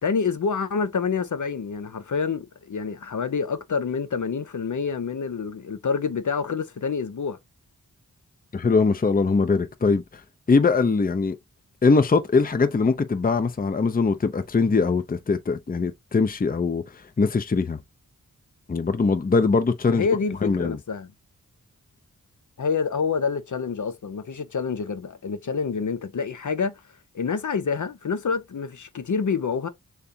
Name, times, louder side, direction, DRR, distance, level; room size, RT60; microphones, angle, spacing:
voice 1, 0.0-7.4 19.9-21.1 22.6-26.8 27.1-29.7, left 5 dB, 60° left, 0.8 m, -27 dB
voice 2, 8.5-10.2 10.5-11.4 11.8-17.8 18.7-20.1 20.4-20.8, left 4 dB, 25° left, 0.6 m, -22 dB
6.6 x 2.3 x 2.7 m
cardioid pair, 55°, 34 cm